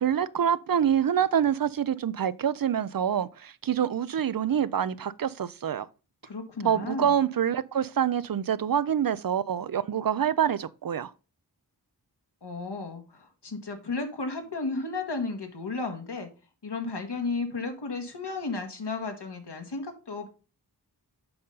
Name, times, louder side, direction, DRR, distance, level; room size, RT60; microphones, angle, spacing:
voice 1, 0.0-5.9 6.6-11.1, right 9 dB, 55° right, 0.5 m, -26 dB
voice 2, 6.2-7.2 12.4-16.3 16.6-20.3, left 3 dB, 80° left, 1.7 m, -33 dB
7.8 x 5.4 x 3.9 m
wide cardioid pair, 70°, 41 cm